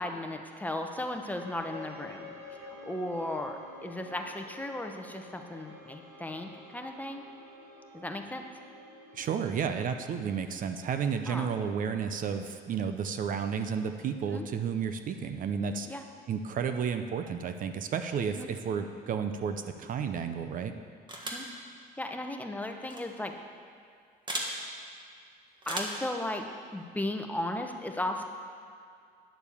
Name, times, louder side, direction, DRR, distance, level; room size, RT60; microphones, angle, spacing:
voice 1, 0.0-2.3 2.8-7.2 7.9-8.4 11.3-11.5 14.3-14.4 15.9-16.0 18.4-18.5 21.2-21.5 22.0-23.3 25.7-26.4 26.7-28.2, left 1 dB, 10° left, 4 dB, 0.9 m, -36 dB
sound 1, 1.2-16.0, left 1 dB, 85° right, 2.1 m, -51 dB
voice 2, 9.1-16.0 16.3-20.7, right 6 dB, 55° right, 8 dB, 0.7 m, -32 dB
sound 2, 21.1-21.5 22.8-23.0 24.3-24.5 25.6-26.1, right 1 dB, 25° right, 1.6 m, -35 dB
10.0 x 6.9 x 7.0 m, 2.3 s
cardioid pair, 110°, 17 cm